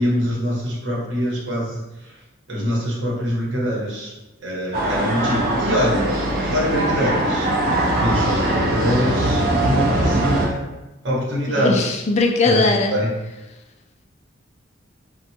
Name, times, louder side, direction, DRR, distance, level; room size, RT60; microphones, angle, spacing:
voice 1, 0.0-2.2 2.5-4.1 4.4-6.1 6.5-10.7 11.0-11.8 12.4-13.1, equal, 65° right, -4 dB, 0.9 m, -24 dB
sound 1, 4.7-10.5, right 1 dB, 50° right, 0.4 m, -21 dB
voice 2, 11.5-12.9, left 3 dB, 35° left, 2 dB, 0.3 m, -19 dB
3.2 x 2.2 x 2.8 m, 1.0 s
head